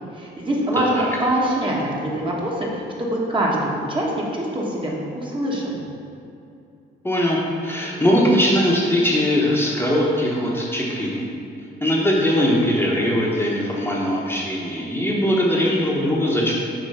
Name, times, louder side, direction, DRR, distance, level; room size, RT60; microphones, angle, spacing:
voice 1, 0.2-5.8, right 1 dB, 25° right, -4 dB, 1.3 m, -24 dB
voice 2, 0.8-1.1 7.0-11.2 11.8-16.6, equal, 10° left, -5 dB, 1.1 m, -20 dB
7.7 x 3.0 x 5.6 m, 2.6 s
cardioid pair, 90°, 20 cm